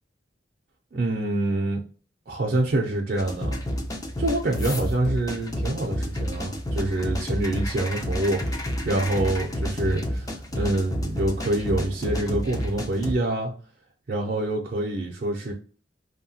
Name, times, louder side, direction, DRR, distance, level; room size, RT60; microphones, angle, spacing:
voice 1, 0.9-1.8 2.3-3.6 4.2-13.5 14.1-15.5, right 2 dB, 50° right, 0.5 m, -26 dB
sound 1, 3.2-13.1, equal, 20° left, 0.5 m, -30 dB
2.8 x 2.2 x 2.7 m
head